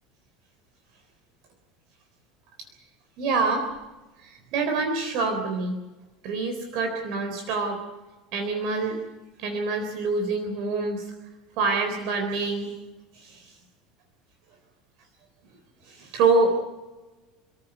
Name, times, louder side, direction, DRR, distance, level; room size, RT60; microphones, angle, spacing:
voice 1, 3.2-3.7 4.2-5.8 6.2-7.8 8.3-9.0 9.4-11.0 11.6-12.7 13.2-13.5 15.9-16.6, right 3 dB, 50° right, 5 dB, 3.8 m, -26 dB
29.0 x 14.5 x 8.1 m, 1.1 s
figure-of-eight pair, 70°, 0 cm